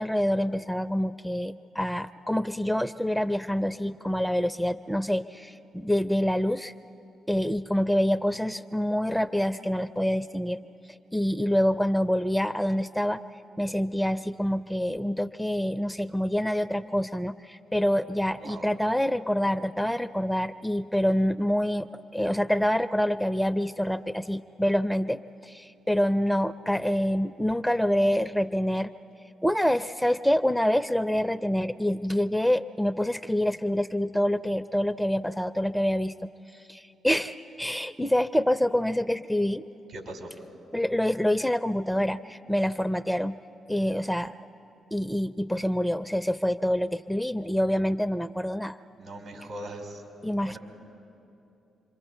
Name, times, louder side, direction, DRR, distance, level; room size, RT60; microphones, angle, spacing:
voice 1, 0.0-6.7 7.3-10.6 11.1-13.2 13.6-21.9 22.1-28.9 29.4-39.7 40.7-43.4 43.7-44.3 44.9-48.8 50.2-50.6, equal, 5° left, 13 dB, 0.5 m, -26 dB
voice 2, 18.4-18.7 39.9-40.3 49.0-50.0 50.4-50.6, right 1 dB, 65° right, 2 dB, 4.0 m, -40 dB
27.5 x 23.5 x 4.6 m, 2.8 s
hypercardioid pair, 45°, 0 cm